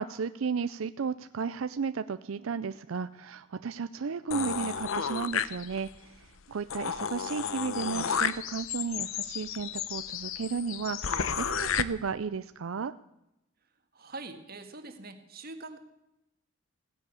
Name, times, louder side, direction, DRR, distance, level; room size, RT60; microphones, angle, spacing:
voice 1, 0.0-12.9, right 5 dB, 85° right, 13 dB, 0.5 m, -34 dB
sound 1, 4.3-6.0 6.4-6.5 6.7-11.8, left 7 dB, 85° left, 0.8 m, -32 dB
voice 2, 13.9-15.8, right 2 dB, 50° right, 6 dB, 1.8 m, -43 dB
16.5 x 10.5 x 8.3 m, 0.88 s
head